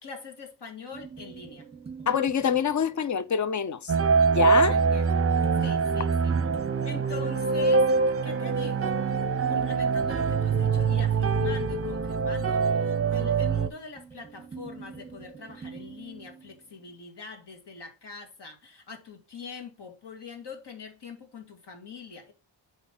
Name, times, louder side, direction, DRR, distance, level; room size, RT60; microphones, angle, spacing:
voice 1, 0.0-1.7 4.7-5.3 5.6-6.3 6.8-9.0 9.5-22.3, left 5 dB, 65° left, 2.4 m, -43 dB
sound 1, 0.9-3.5 5.2-8.1 9.6-16.9, right 4 dB, 15° right, 1.3 m, -44 dB
voice 2, 2.1-3.9 4.3-4.8, left 7 dB, 40° left, 0.7 m, -25 dB
sound 2, 3.9-13.7, right 5 dB, 30° right, 0.7 m, -24 dB
8.2 x 5.1 x 3.9 m
wide cardioid pair, 115°, 45 cm